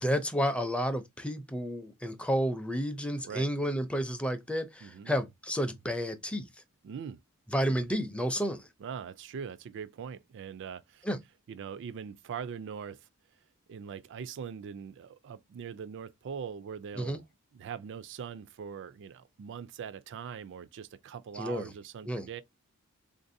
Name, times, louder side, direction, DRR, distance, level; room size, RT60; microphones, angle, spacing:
voice 1, 0.0-6.5 7.5-8.7 11.0-11.2 17.0-17.2 21.3-21.7 22.1-22.3, equal, 5° left, 0.5 m, -31 dB
voice 2, 4.8-5.1 6.8-7.2 8.8-11.0 11.5-13.0 13.7-17.2 17.5-22.4, right 7 dB, 55° right, 0.3 m, -41 dB
3.7 x 2.6 x 2.6 m
head